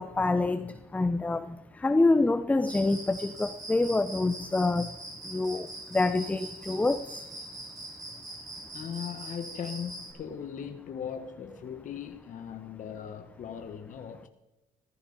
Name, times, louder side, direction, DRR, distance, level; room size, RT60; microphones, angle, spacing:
voice 1, 0.0-4.9 5.3-7.2, left 2 dB, 10° left, 0.5 m, -27 dB
Cricket, 2.7-10.1, right 2 dB, 20° right, 3.4 m, -42 dB
voice 2, 8.7-14.3, left 8 dB, 50° left, 1.4 m, -39 dB
15.5 x 14.5 x 4.1 m
cardioid pair, 110°, 17 cm